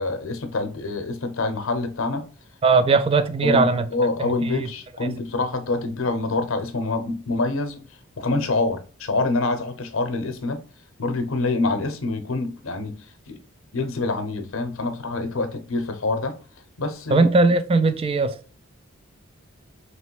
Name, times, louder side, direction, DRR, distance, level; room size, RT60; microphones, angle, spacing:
voice 1, 0.0-2.2 3.4-7.9 8.2-10.6 11.0-12.9 13.3-13.4 13.7-16.3 16.8-17.3, left 3 dB, 75° left, 0.7 m, -26 dB
voice 2, 2.6-3.9 4.2-4.7 17.1-18.4, right 3 dB, 30° right, 0.4 m, -19 dB
3.1 x 2.9 x 4.6 m
head